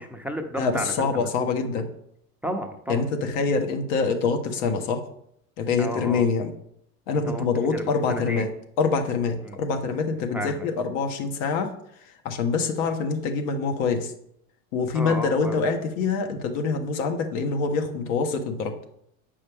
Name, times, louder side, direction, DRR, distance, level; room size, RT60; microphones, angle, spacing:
voice 1, 0.0-1.3 2.4-3.0 5.8-6.3 7.2-8.5 9.4-9.6 10.3-10.7 14.9-15.6, equal, 5° right, 4 dB, 0.8 m, -32 dB
voice 2, 0.6-1.9 2.9-5.0 5.6-6.5 7.1-8.5 8.8-11.7 12.2-14.1 14.7-18.9, left 4 dB, 65° left, 5 dB, 1.4 m, -25 dB
8.3 x 5.4 x 3.5 m, 0.72 s
hypercardioid pair, 90°, 44 cm